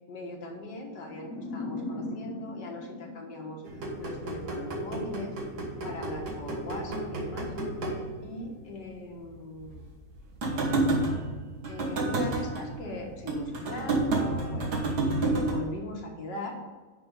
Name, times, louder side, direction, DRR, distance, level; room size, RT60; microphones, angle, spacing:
voice 1, 0.1-3.6 4.0-5.3 5.8-7.5 7.8-8.0 8.2-9.8 11.7-14.7 15.2-16.6, left 2 dB, 80° left, 1 dB, 2.1 m, -40 dB
sound 1, 1.1-4.2, left 2 dB, 60° left, 1.1 m, -39 dB
sound 2, 3.6-8.8 9.2-9.3 9.6-15.6, right 2 dB, 70° right, 2.0 m, -31 dB
10.5 x 3.7 x 6.8 m, 1.4 s
omnidirectional pair, 1.8 m